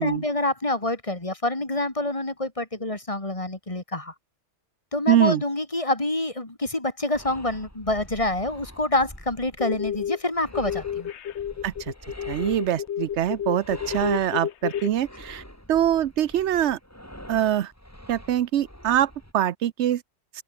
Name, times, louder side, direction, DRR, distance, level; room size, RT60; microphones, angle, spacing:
voice 1, 0.0-4.1 4.9-11.1, left 2 dB, 30° left, 2.7 m, -27 dB
voice 2, 5.1-5.4 11.6-11.9 12.3-15.4 15.7-16.8 17.3-17.7 18.1-20.0, right 11 dB, 80° right, 1.0 m, -24 dB
sound 1, 7.1-19.3, equal, 15° left, 7.6 m, -45 dB
sound 2, 9.6-10.2 10.5-14.9, left 9 dB, 75° left, 1.1 m, -30 dB
open air
omnidirectional pair, 1.2 m